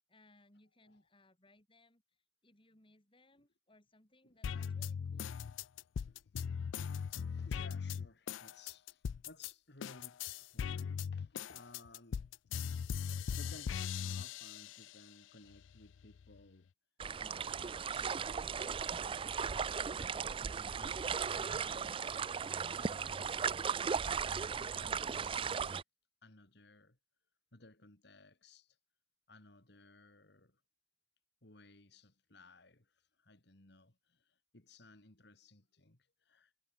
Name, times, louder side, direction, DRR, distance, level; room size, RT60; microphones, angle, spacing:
voice 1, 0.1-2.0 2.4-5.4, left 2 dB, 25° left, 4.1 m, -67 dB
sound 1, 4.4-9.5 9.8-15.0 15.5-16.4, left 7 dB, 80° left, 0.4 m, -39 dB
voice 2, 6.0-6.5 7.1-12.3 13.1-16.7 17.2-18.4 18.9-19.6 19.9-23.6 24.2-25.8 26.2-27.0 27.5-28.8 29.3-30.6 31.4-36.5, left 2 dB, 60° left, 2.6 m, -60 dB
sound 2, 17.0-25.8, right 6 dB, 30° right, 0.4 m, -37 dB
head